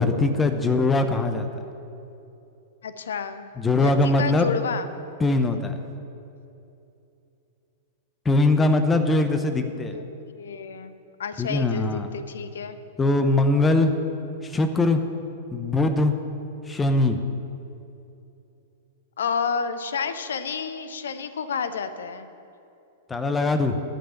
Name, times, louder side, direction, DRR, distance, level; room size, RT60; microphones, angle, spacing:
voice 1, 0.0-1.5 3.6-4.5 5.2-5.8 8.2-9.9 11.4-12.1 13.0-13.9 14.4-15.0 15.5-16.1 16.7-17.2 23.1-23.8, left 2 dB, 15° left, 8 dB, 0.7 m, -21 dB
voice 2, 2.8-3.5 3.8-4.9 9.9-10.9 11.2-12.8 19.2-22.3, left 6 dB, 70° left, 12 dB, 0.7 m, -30 dB
11.5 x 5.5 x 8.6 m, 2.8 s
figure-of-eight pair, 100°, 0 cm